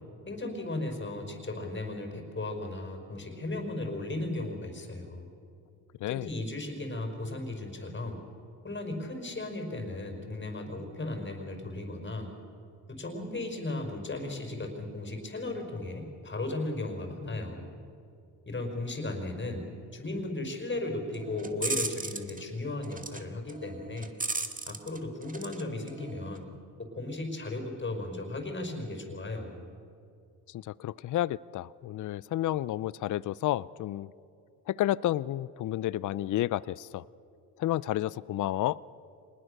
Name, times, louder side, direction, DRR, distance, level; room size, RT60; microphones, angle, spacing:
voice 1, 0.3-5.3 6.1-8.2 8.6-12.3 12.9-17.7 18.5-24.1 24.7-26.5 26.8-29.6, left 2 dB, 25° left, 4 dB, 5.3 m, -36 dB
sound 1, 21.1-22.4 22.8-23.2 23.5-25.6 25.9-26.4, right 3 dB, 20° right, 2.0 m, -35 dB
voice 2, 30.5-34.1 34.7-37.0 37.6-38.8, left 14 dB, 45° left, 21 dB, 0.5 m, -31 dB
25.5 x 20.0 x 6.7 m, 2.5 s
supercardioid pair, 75°, 42 cm